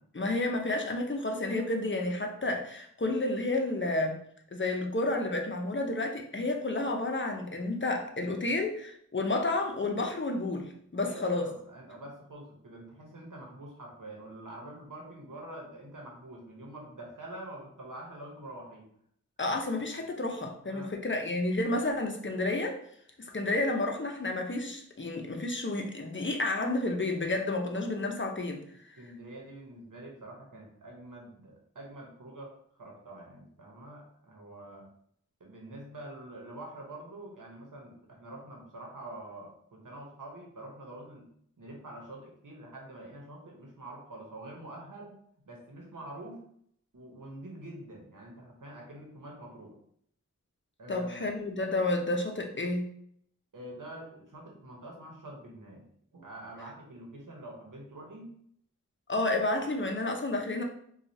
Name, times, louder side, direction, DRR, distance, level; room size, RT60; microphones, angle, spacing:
voice 1, 0.1-4.2 4.5-11.5 19.4-22.8 23.2-28.6 28.9-29.0 50.9-52.9 59.1-60.6, left 2 dB, 40° left, 2 dB, 0.6 m, -31 dB
voice 2, 11.0-18.9 20.7-21.0 29.0-34.9 35.4-41.3 41.6-45.2 45.5-46.4 46.9-49.8 50.8-51.3 53.5-55.8 56.1-58.3, right 1 dB, 85° right, -1 dB, 0.9 m, -46 dB
4.3 x 2.3 x 2.7 m, 0.66 s
wide cardioid pair, 40°, 31 cm